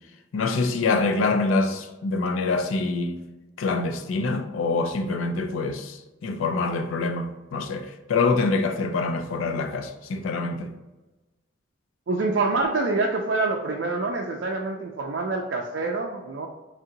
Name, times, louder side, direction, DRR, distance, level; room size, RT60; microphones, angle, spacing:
voice 1, 0.3-3.2 3.6-10.7, left 3 dB, 85° left, 0.4 m, -25 dB
voice 2, 12.1-16.5, right 3 dB, 60° right, 0.4 m, -26 dB
3.3 x 2.7 x 3.8 m
head